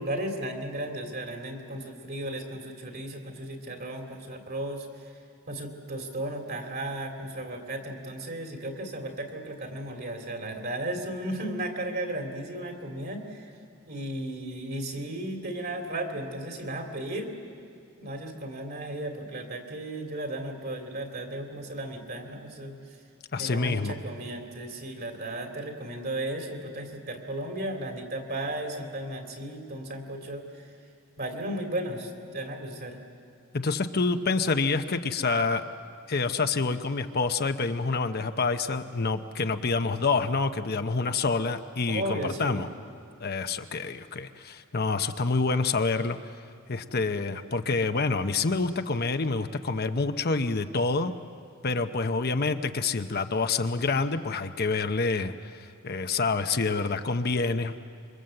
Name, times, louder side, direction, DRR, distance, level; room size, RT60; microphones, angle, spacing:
voice 1, 0.0-4.9 5.5-13.5 13.9-17.3 18.0-22.7 23.4-30.4 31.2-33.0 41.9-42.6, right 1 dB, 50° right, 3 dB, 3.0 m, -35 dB
voice 2, 23.3-24.0 33.5-35.6 36.1-42.7 43.2-46.2 46.7-51.1 51.6-57.7, left 4 dB, 50° left, 8 dB, 0.8 m, -27 dB
26.5 x 23.5 x 7.8 m, 2.4 s
head